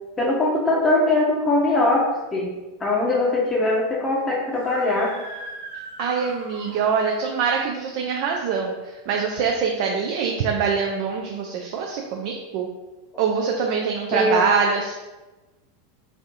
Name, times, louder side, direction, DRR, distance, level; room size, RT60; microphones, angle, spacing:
voice 1, 0.2-2.5 2.8-5.2 14.1-14.5, left 2 dB, 20° left, -3 dB, 0.6 m, -21 dB
Screaming, 4.5-7.3, right 1 dB, 70° right, 0.9 m, -39 dB
voice 2, 6.0-12.7 13.2-14.9, right 5 dB, 55° right, 1 dB, 0.4 m, -24 dB
3.2 x 2.6 x 2.5 m, 1.1 s
figure-of-eight pair, 90°, 0 cm